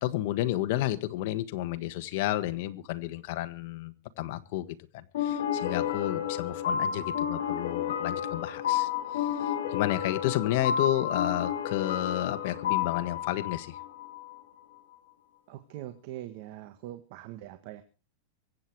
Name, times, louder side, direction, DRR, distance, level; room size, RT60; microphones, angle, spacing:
voice 1, 0.0-13.8, left 15 dB, 55° left, 11 dB, 1.5 m, -31 dB
sound 1, 5.1-14.4, left 9 dB, 80° left, 3.0 m, -31 dB
voice 2, 15.5-17.8, right 14 dB, 55° right, 8 dB, 1.6 m, -42 dB
24.0 x 8.8 x 4.8 m, 0.34 s
supercardioid pair, 150°, 0 cm